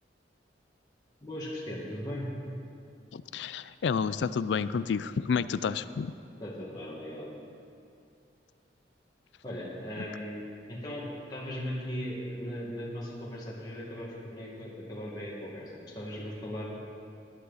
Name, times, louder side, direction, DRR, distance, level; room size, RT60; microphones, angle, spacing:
voice 1, 1.2-2.3 6.4-7.3 9.4-11.0 11.3-16.7, equal, 25° left, -6 dB, 2.0 m, -38 dB
voice 2, 3.1-6.1, left 6 dB, 85° left, 15 dB, 0.4 m, -30 dB
18.0 x 11.0 x 4.1 m, 2.5 s
head